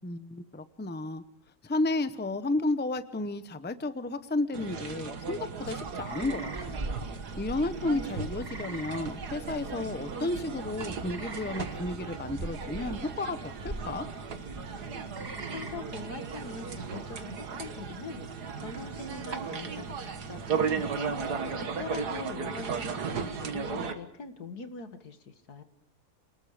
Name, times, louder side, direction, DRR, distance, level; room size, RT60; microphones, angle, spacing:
voice 1, 0.0-1.2 1.6-6.8 7.4-14.1, left 2 dB, 10° left, 12 dB, 0.7 m, -32 dB
sound 1, 4.5-23.9, right 5 dB, 85° right, 2.1 m, -36 dB
sound 2, 5.4-21.6, right 2 dB, 30° right, 1.7 m, -44 dB
voice 2, 15.5-18.2 18.6-21.2 21.5-25.6, left 4 dB, 80° left, 8 dB, 2.4 m, -42 dB
29.0 x 20.5 x 5.0 m, 0.68 s
omnidirectional pair, 1.7 m